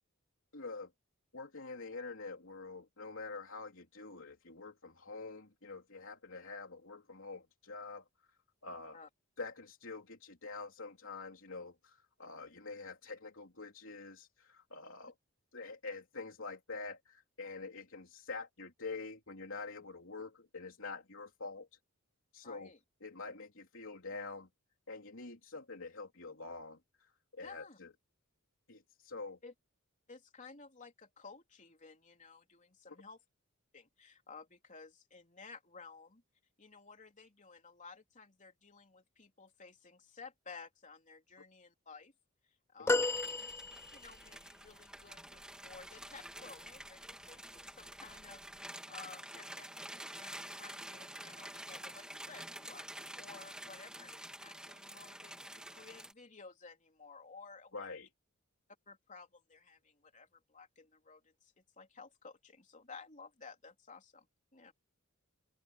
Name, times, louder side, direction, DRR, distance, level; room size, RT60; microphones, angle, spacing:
voice 1, 0.5-0.9 1.3-8.0 8.6-9.0 9.4-15.1 15.5-21.7 22.3-22.7 23.0-24.5 24.9-27.9 28.7-29.4 42.9-43.1 57.7-58.1, left 3 dB, 65° left, 3.7 m, -46 dB
voice 2, 22.4-22.8 27.4-27.8 29.4-29.5 30.1-33.2 33.7-36.2 36.6-42.1 42.4-43.1 43.9-57.9 58.9-64.3 64.5-64.7, left 4 dB, 35° left, 3.5 m, -55 dB
sound 1, 42.9-44.3 46.7-46.9 48.2-48.3, left 2 dB, 10° left, 0.3 m, -33 dB
sound 2, 43.0-56.1, right 1 dB, 5° right, 2.3 m, -49 dB
open air
head